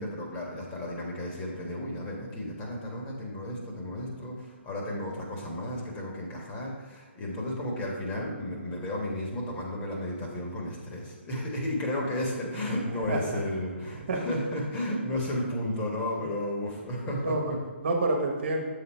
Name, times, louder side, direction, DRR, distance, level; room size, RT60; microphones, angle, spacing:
voice 1, 0.0-17.6, left 1 dB, 25° left, -2 dB, 1.6 m, -33 dB
voice 2, 12.9-13.4 14.1-14.3 15.4-15.5 17.0-18.6, right 2 dB, 60° right, 1 dB, 1.2 m, -29 dB
7.2 x 3.9 x 4.5 m, 1.4 s
figure-of-eight pair, 130°, 7 cm